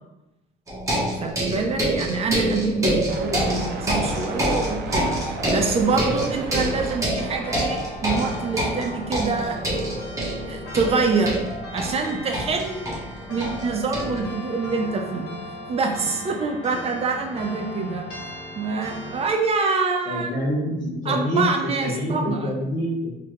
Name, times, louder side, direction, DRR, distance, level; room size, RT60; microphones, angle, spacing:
sound 1, 0.7-14.2, right 1 dB, 20° right, 1.1 m, -27 dB
voice 1, 1.1-5.1 5.5-9.6 10.5-11.4 11.7-12.9 13.3-15.3 15.7-18.0 18.6-20.3 21.0-22.5, right 4 dB, 35° right, 3 dB, 0.7 m, -25 dB
sound 2, 2.6-7.1, right 5 dB, 75° right, 0.5 m, -35 dB
sound 3, 7.2-19.3, left 1 dB, 70° left, 1.4 m, -38 dB
voice 2, 20.0-23.1, equal, 45° left, -5 dB, 1.0 m, -26 dB
3.9 x 2.8 x 3.0 m, 0.92 s
cardioid pair, 110°, 17 cm